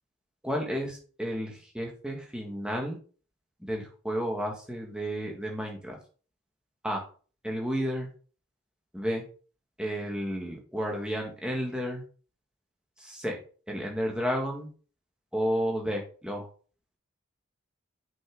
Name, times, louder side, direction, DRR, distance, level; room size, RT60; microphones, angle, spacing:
voice 1, 0.4-3.0 3.6-6.0 6.8-7.0 7.4-8.1 8.9-9.2 9.8-12.0 13.0-13.3 13.7-14.7 15.3-16.5, equal, 5° right, 0 dB, 1.7 m, -32 dB
7.0 x 6.0 x 3.7 m, 0.39 s
head